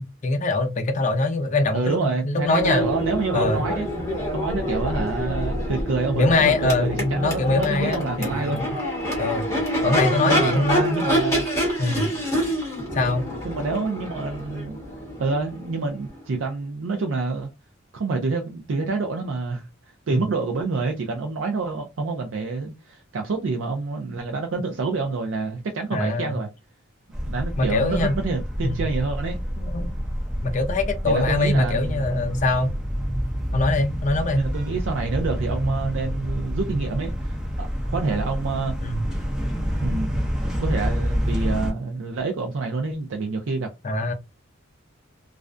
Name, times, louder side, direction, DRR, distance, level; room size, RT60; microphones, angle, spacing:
voice 1, 0.0-2.9 3.3-3.6 6.1-8.6 9.2-11.0 11.8-12.1 12.9-13.2 20.1-20.2 25.9-26.4 27.6-28.1 28.6-28.8 29.6-29.9 30.4-32.7 33.5-34.4 38.8-39.0 43.8-44.1, left 2 dB, 40° left, 0.5 m, -23 dB
voice 2, 1.7-3.9 4.3-8.6 9.8-11.5 13.4-14.8 15.2-17.5 17.9-26.5 27.3-29.4 31.0-32.2 34.3-38.8 39.8-40.1 40.6-43.7, right 3 dB, 75° right, 0.4 m, -27 dB
Crowd / Race car auto racing / Accelerating revving vroom, 2.4-16.2, equal, 15° left, 0.9 m, -27 dB
sound 1, 27.1-41.7, equal, 5° right, 0.6 m, -27 dB
2.4 x 2.1 x 2.4 m
head